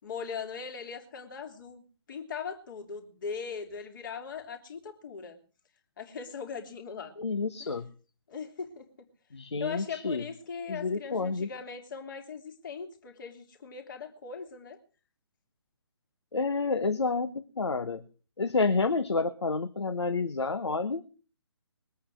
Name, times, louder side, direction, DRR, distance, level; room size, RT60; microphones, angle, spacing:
voice 1, 0.0-5.4 6.0-7.1 7.6-7.7 8.3-8.9 9.6-14.8, left 6 dB, 45° left, 5 dB, 3.1 m, -40 dB
voice 2, 7.2-7.8 9.3-10.2 10.7-11.5 16.3-18.0 18.4-21.0, left 4 dB, 70° left, 10 dB, 1.3 m, -29 dB
21.0 x 8.7 x 6.3 m, 0.39 s
figure-of-eight pair, 140°, 15 cm